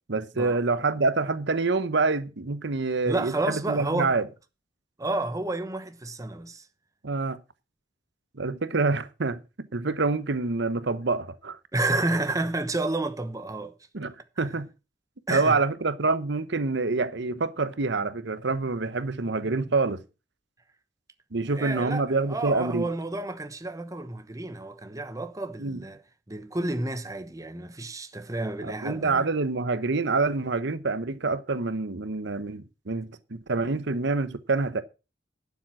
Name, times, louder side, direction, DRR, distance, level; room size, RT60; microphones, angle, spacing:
voice 1, 0.1-4.3 7.0-7.4 8.4-11.6 13.9-14.7 15.3-20.0 21.3-22.9 25.6-25.8 28.6-34.8, right 3 dB, 65° right, 0.9 m, -27 dB
voice 2, 3.0-4.2 5.0-6.6 11.7-13.7 15.3-15.6 21.5-26.0 26.3-29.3, right 2 dB, 20° right, 1.0 m, -30 dB
12.0 x 7.3 x 6.1 m
head